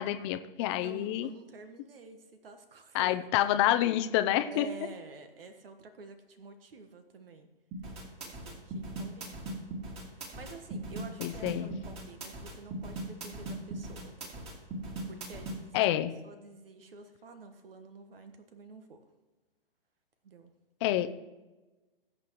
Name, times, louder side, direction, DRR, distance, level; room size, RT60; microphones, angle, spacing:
voice 1, 0.0-1.3 2.9-4.7 11.2-11.7 15.7-16.1 20.8-21.1, left 13 dB, 30° left, 9 dB, 0.6 m, -28 dB
voice 2, 0.8-3.2 4.5-7.5 8.2-9.4 10.1-14.5 15.1-15.8 16.2-19.0 20.2-20.5, right 3 dB, 70° right, 7 dB, 1.4 m, -49 dB
sound 1, 7.7-15.6, right 2 dB, 20° right, 2.3 m, -39 dB
20.0 x 8.1 x 3.1 m, 1.1 s
hypercardioid pair, 135°, 29 cm